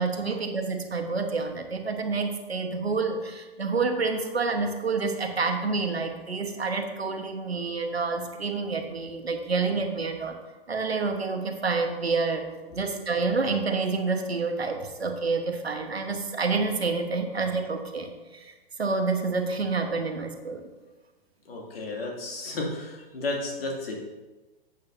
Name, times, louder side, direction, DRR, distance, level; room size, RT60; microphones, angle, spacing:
voice 1, 0.0-10.4 10.7-12.4 12.7-18.5 18.8-20.7, right 4 dB, 90° right, 5 dB, 1.2 m, -28 dB
voice 2, 21.5-23.9, left 2 dB, 70° left, -1 dB, 2.4 m, -33 dB
11.0 x 8.2 x 2.7 m, 1.2 s
figure-of-eight pair, 110°, 30 cm